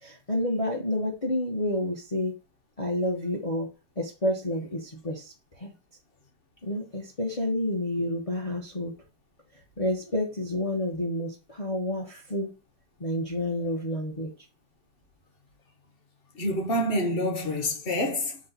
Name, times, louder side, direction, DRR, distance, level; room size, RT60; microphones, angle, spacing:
voice 1, 0.0-2.3 2.8-3.7 4.0-5.3 5.6-5.7 6.6-8.9 9.8-12.5 13.0-14.3, left 1 dB, 60° left, 0.3 m, -29 dB
voice 2, 16.3-18.4, left 1 dB, 45° left, 0.8 m, -27 dB
5.2 x 2.1 x 3.9 m
omnidirectional pair, 1.9 m